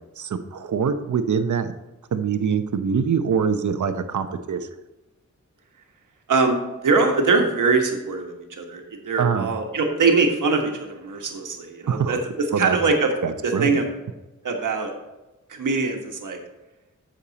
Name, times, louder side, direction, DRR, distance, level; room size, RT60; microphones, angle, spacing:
voice 1, 0.2-1.7 2.1-4.7 9.2-9.5 11.9-12.2 12.5-12.8 13.2-13.8, right 6 dB, 70° right, 9 dB, 0.8 m, -24 dB
voice 2, 6.8-12.2 12.6-13.1 13.4-13.8 14.4-14.9 15.5-16.4, right 4 dB, 85° right, 3 dB, 1.4 m, -22 dB
8.5 x 6.6 x 4.0 m, 1.0 s
wide cardioid pair, 80°, 30 cm